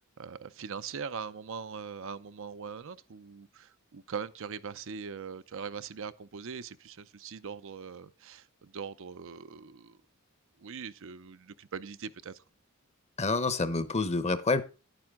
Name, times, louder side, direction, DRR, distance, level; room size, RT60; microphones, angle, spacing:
voice 1, 0.0-10.0 10.6-12.4, right 6 dB, 65° right, 0.6 m, -41 dB
voice 2, 13.2-14.6, left 3 dB, 30° left, 0.9 m, -28 dB
10.5 x 9.1 x 3.7 m
head